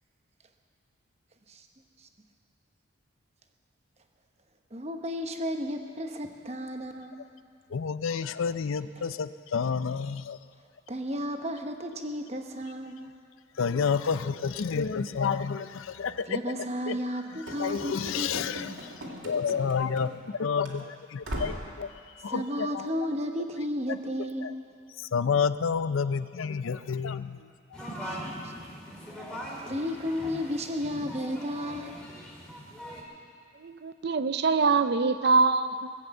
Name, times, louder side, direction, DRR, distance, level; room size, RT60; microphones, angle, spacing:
voice 1, 4.7-7.3 9.0-9.1 10.9-13.1 16.3-18.6 22.3-24.6 28.0-28.5 29.7-32.0, equal, 30° right, 5 dB, 1.0 m, -33 dB
voice 2, 7.7-10.4 11.1-11.3 13.6-16.4 16.9-17.0 17.3-21.9 22.1-22.9 23.9-24.0 24.4-24.5 25.0-27.5, left 6 dB, 75° left, 13 dB, 0.5 m, -30 dB
Run / Slam, 17.5-20.3 20.6-20.8 21.2-21.7, equal, 70° right, 2.5 m, -39 dB
sound 1, 27.7-33.0, equal, 5° left, 2.2 m, -41 dB
voice 3, 33.6-35.9, right 4 dB, 50° right, 11 dB, 0.5 m, -24 dB
19.0 x 8.0 x 8.1 m, 2.2 s
head